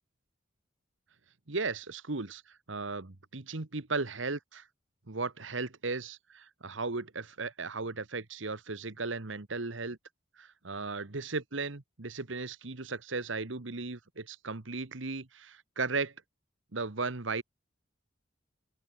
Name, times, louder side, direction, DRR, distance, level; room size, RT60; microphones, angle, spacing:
voice 1, 1.5-4.7 5.1-10.0 10.4-16.1 16.7-17.4, right 3 dB, 75° right, 1.5 m, -36 dB
open air
head